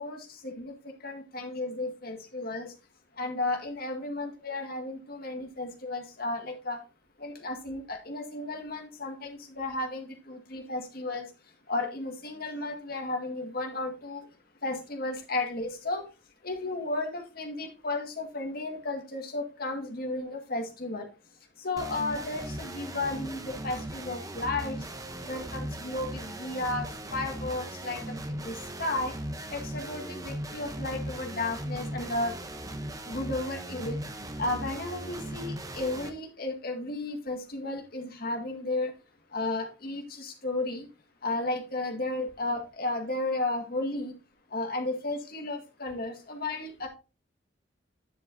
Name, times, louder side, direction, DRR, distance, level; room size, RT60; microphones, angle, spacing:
voice 1, 0.0-2.7 3.1-6.8 7.2-11.3 11.7-14.3 14.6-16.1 16.4-21.1 21.6-24.8 25.3-29.1 29.5-32.3 33.1-34.0 34.4-38.9 39.3-40.9 41.2-44.1 44.5-46.9, left 2 dB, 55° left, 3 dB, 1.9 m, -33 dB
sound 1, 21.8-36.1, right 1 dB, 20° right, 0.9 m, -38 dB
10.0 x 7.5 x 2.7 m, 0.30 s
head